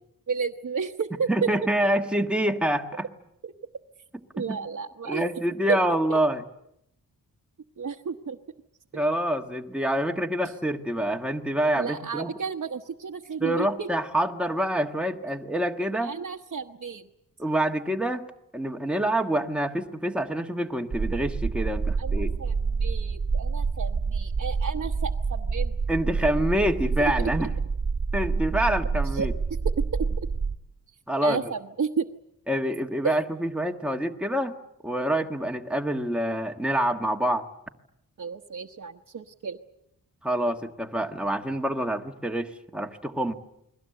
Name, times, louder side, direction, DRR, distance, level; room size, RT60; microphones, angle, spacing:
voice 1, 0.3-1.5 4.3-5.2 5.7-6.2 7.8-8.4 11.8-13.9 16.0-17.0 22.0-25.8 27.0-27.1 29.1-29.3 29.6-29.7 30.2-30.3 31.2-32.1 33.0-33.2 38.2-39.6, right 5 dB, 50° right, 0 dB, 1.1 m, -32 dB
voice 2, 1.3-3.1 4.4-4.6 5.0-6.4 8.9-12.3 13.4-16.1 17.4-18.3 18.5-22.3 25.9-27.5 28.1-29.3 31.1-31.4 32.5-34.5 34.8-37.5 40.2-43.3, right 1 dB, 5° right, 4 dB, 1.4 m, -26 dB
sound 1, 20.9-30.6, right 4 dB, 35° right, 1.6 m, -27 dB
30.0 x 22.0 x 7.9 m, 0.80 s
wide cardioid pair, 165°, 34 cm